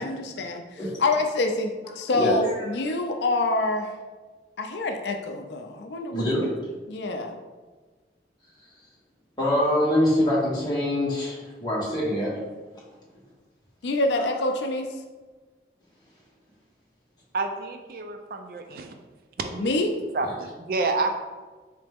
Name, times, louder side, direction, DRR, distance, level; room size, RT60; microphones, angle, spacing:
voice 1, 0.0-3.9 4.6-6.2 6.9-7.3 13.8-14.9 19.6-19.9, left 2 dB, 80° left, 5 dB, 0.4 m, -26 dB
voice 2, 2.1-2.7 6.1-6.5 9.4-12.3, left 1 dB, 25° left, -6 dB, 1.2 m, -24 dB
voice 3, 17.3-18.9 19.4-19.7 20.1-21.1, right 3 dB, 55° right, 6 dB, 0.4 m, -29 dB
4.0 x 3.3 x 3.4 m, 1.3 s
head